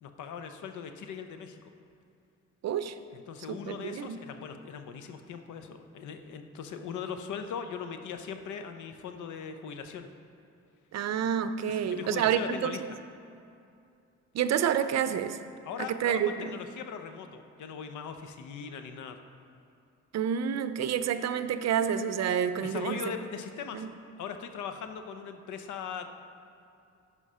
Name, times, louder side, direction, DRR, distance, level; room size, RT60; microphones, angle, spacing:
voice 1, 0.0-1.6 3.1-10.1 11.9-12.8 15.6-19.2 22.6-23.9 24.2-26.1, left 6 dB, 75° left, 7 dB, 0.8 m, -40 dB
voice 2, 2.6-3.0 3.5-4.2 10.9-12.8 14.3-15.4 15.8-16.5 20.1-23.1 23.7-23.9, right 8 dB, 60° right, 11 dB, 0.6 m, -29 dB
13.5 x 5.0 x 5.6 m, 2.5 s
cardioid pair, 90°, 30 cm